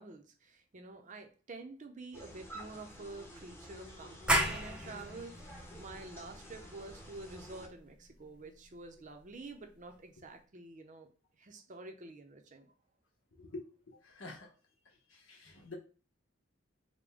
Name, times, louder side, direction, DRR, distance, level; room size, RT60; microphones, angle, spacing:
voice 1, 0.0-11.1 11.4-12.7, right 3 dB, 40° right, 4 dB, 0.7 m, -49 dB
sound 1, 2.1-7.7, equal, 15° left, 0.9 m, -51 dB
sound 2, 4.3-9.7, right 1 dB, 5° right, 0.6 m, -36 dB
voice 2, 14.0-14.5 15.3-15.7, left 2 dB, 80° left, 2 dB, 1.0 m, -46 dB
5.2 x 2.2 x 3.4 m, 0.36 s
head